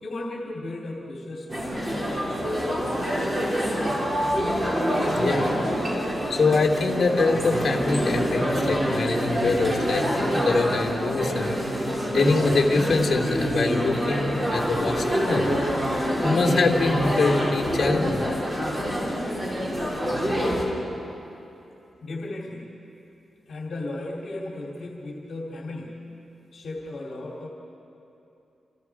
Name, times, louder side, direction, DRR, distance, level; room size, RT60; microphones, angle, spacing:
voice 1, 0.0-3.4 22.0-22.8 23.5-26.2 26.5-27.5, left 2 dB, 60° left, -3 dB, 3.0 m, -36 dB
sound 1, 1.5-20.7, equal, 25° right, 5.6 m, -26 dB
voice 2, 5.2-5.5 6.3-11.6 12.1-15.5 16.0-18.3, left 3 dB, 45° left, 0 dB, 3.4 m, -24 dB
29.5 x 28.5 x 4.9 m, 2.8 s
wide cardioid pair, 140°, 0 cm